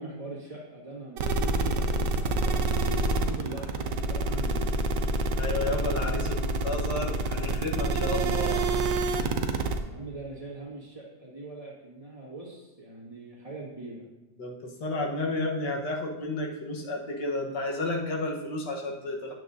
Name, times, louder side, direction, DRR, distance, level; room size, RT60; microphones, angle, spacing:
voice 1, 0.0-4.7 9.8-14.1, right 2 dB, 20° right, -5 dB, 1.8 m, -42 dB
sound 1, 1.2-9.8, right 2 dB, 85° right, 1.3 m, -27 dB
voice 2, 5.3-8.6 14.4-19.3, left 2 dB, 80° left, 0 dB, 1.8 m, -32 dB
9.3 x 7.7 x 2.6 m, 0.98 s
omnidirectional pair, 1.8 m